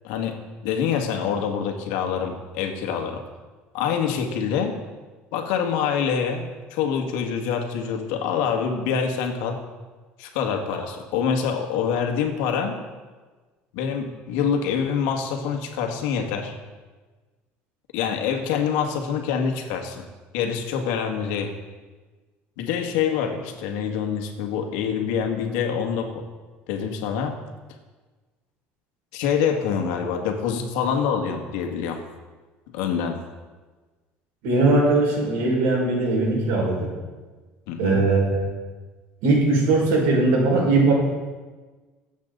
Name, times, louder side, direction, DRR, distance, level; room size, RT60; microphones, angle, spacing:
voice 1, 0.0-0.4 0.6-3.2 3.7-4.7 5.3-9.6 10.2-12.8 13.7-16.6 17.9-20.0 20.3-21.5 22.6-26.2 26.7-27.4 29.1-32.0 32.7-33.2 37.7-38.0, left 7 dB, 85° left, 4 dB, 1.9 m, -25 dB
voice 2, 34.4-36.9 37.8-38.5 39.2-40.9, right 2 dB, 80° right, -2 dB, 5.3 m, -20 dB
22.5 x 8.4 x 4.0 m, 1.3 s
cardioid pair, 145°, 4 cm